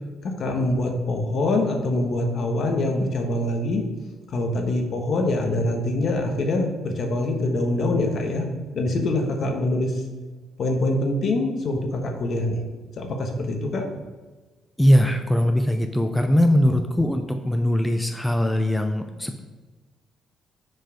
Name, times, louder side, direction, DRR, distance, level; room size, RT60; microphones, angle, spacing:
voice 1, 0.2-3.8 4.3-8.5 8.7-10.0 10.6-12.6 13.0-13.9 16.6-16.7, left 2 dB, 60° left, 3 dB, 1.3 m, -24 dB
voice 2, 14.8-19.4, equal, 10° left, 5 dB, 0.5 m, -21 dB
6.3 x 4.7 x 5.0 m, 1.3 s
cardioid pair, 90°, 0 cm